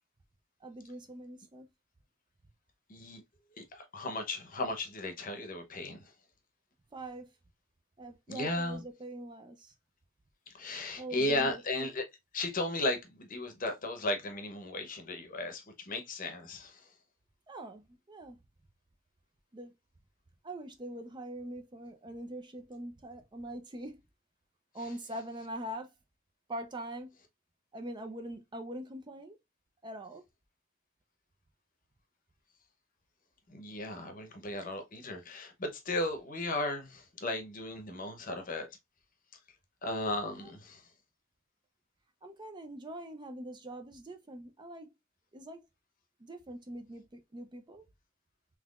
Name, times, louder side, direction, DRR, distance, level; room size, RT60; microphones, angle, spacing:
voice 1, 0.6-1.7 6.9-7.3 8.0-9.7 11.0-11.6 17.5-18.4 19.5-19.7 20.4-24.0 24.7-25.9 26.5-27.1 27.7-29.4 29.8-30.2 40.4-40.5 42.2-44.9 45.3-45.7 46.2-47.8, right 1 dB, 20° right, 0.4 m, -43 dB
voice 2, 2.9-3.2 3.6-6.0 8.3-8.8 10.5-12.0 12.3-16.8 33.5-38.7 39.8-40.8, left 2 dB, 40° left, 0.8 m, -35 dB
3.7 x 2.9 x 2.4 m
head